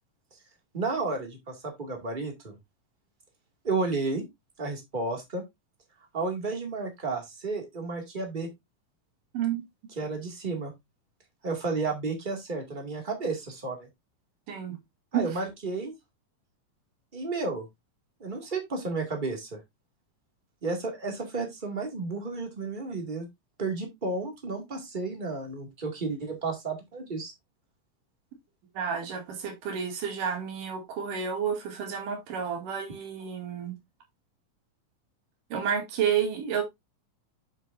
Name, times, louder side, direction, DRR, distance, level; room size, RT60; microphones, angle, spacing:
voice 1, 0.7-2.5 3.6-4.2 4.6-5.4 6.1-8.5 10.0-10.7 11.4-13.9 15.1-15.9 17.1-17.7 18.2-19.6 20.6-23.3 23.6-27.3, right 3 dB, 20° right, 1.7 m, -32 dB
voice 2, 28.8-33.8 35.5-36.6, right 7 dB, 70° right, 3.8 m, -30 dB
8.2 x 7.2 x 2.6 m
omnidirectional pair, 3.9 m